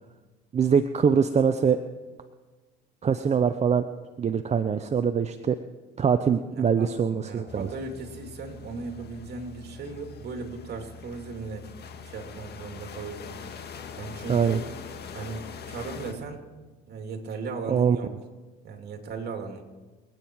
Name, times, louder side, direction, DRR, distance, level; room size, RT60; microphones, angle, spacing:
voice 1, 0.5-1.8 3.0-3.8 4.2-5.6 6.0-7.7 14.3-14.6 17.7-18.0, right 6 dB, 30° right, 9 dB, 0.7 m, -23 dB
voice 2, 6.5-11.7 12.1-13.7 14.0-14.6 15.1-16.4 16.9-18.1 18.6-19.6, right 4 dB, 50° right, 4 dB, 2.9 m, -37 dB
sound 1, 7.5-16.1, left 6 dB, 50° left, 1.9 m, -43 dB
27.0 x 9.1 x 4.7 m, 1.3 s
supercardioid pair, 75°, 21 cm